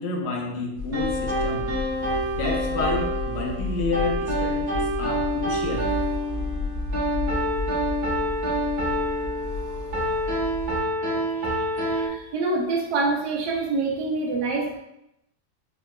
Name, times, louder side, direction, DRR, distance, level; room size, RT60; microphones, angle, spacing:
voice 1, 0.0-1.7 2.4-5.9, left 3 dB, 85° left, 0 dB, 1.2 m, -30 dB
sound 1, 0.8-10.8, left 2 dB, 65° left, 0.9 m, -33 dB
sound 2, 0.9-12.1, equal, 45° right, 1.1 m, -27 dB
voice 2, 11.3-14.8, right 3 dB, 80° right, 0 dB, 1.2 m, -27 dB
3.7 x 2.2 x 2.2 m, 0.82 s
omnidirectional pair, 1.7 m